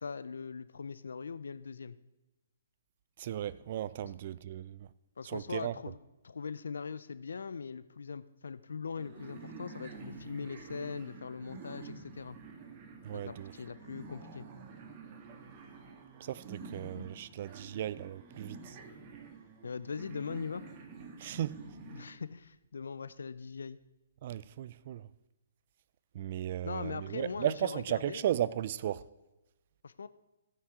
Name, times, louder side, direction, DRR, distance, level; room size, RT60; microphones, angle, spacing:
voice 1, 0.0-2.0 4.0-4.1 5.2-6.0 6.2-12.4 13.1-14.5 19.6-20.7 21.9-23.8 26.6-28.2 29.8-30.1, left 5 dB, 80° left, 0.5 m, -41 dB
voice 2, 3.2-4.9 5.2-5.7 13.0-13.5 16.2-18.8 21.2-21.6 24.2-25.1 26.1-29.1, right 11 dB, 50° right, 0.5 m, -35 dB
sound 1, 9.0-22.2, right 4 dB, 30° right, 1.6 m, -49 dB
15.5 x 5.9 x 4.8 m
hypercardioid pair, 140°, 0 cm